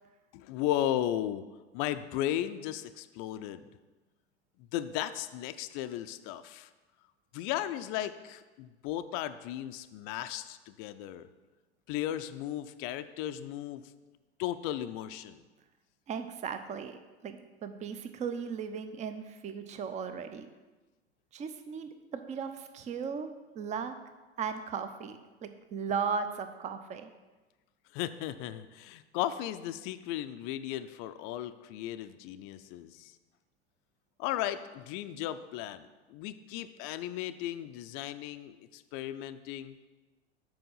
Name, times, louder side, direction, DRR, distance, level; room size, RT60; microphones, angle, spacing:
voice 1, 0.3-1.4 1.7-3.7 4.6-6.7 7.3-11.3 11.9-13.9 14.4-15.4 27.9-33.2 34.2-39.8, left 12 dB, 40° left, 11 dB, 0.4 m, -35 dB
voice 2, 16.1-20.5 21.3-23.3 23.5-23.9 24.4-27.1, right 6 dB, 20° right, 9 dB, 0.6 m, -37 dB
7.6 x 4.8 x 5.5 m, 1.2 s
figure-of-eight pair, 85°, 34 cm